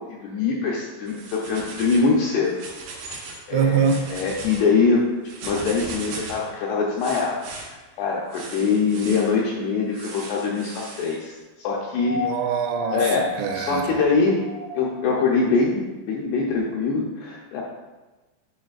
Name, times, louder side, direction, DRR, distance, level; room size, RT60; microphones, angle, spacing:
voice 1, 0.0-2.5 3.5-5.0 5.4-7.4 7.7-12.3 12.9-14.4 14.7-17.6, left 4 dB, 80° left, -3 dB, 2.4 m, -23 dB
sound 1, 1.1-2.1 2.5-3.4 3.7-4.6 5.2-6.5 7.0-7.7 8.3-9.3 9.9-11.2, right 3 dB, 70° right, 2.2 m, -38 dB
voice 2, 3.5-4.1 12.1-13.9, right 6 dB, 85° right, 6 dB, 2.9 m, -24 dB
sound 2, 11.9-15.1 16.5-16.6, left 5 dB, 50° right, 0.7 m, -33 dB
8.8 x 5.2 x 2.4 m, 1.2 s
omnidirectional pair, 5.2 m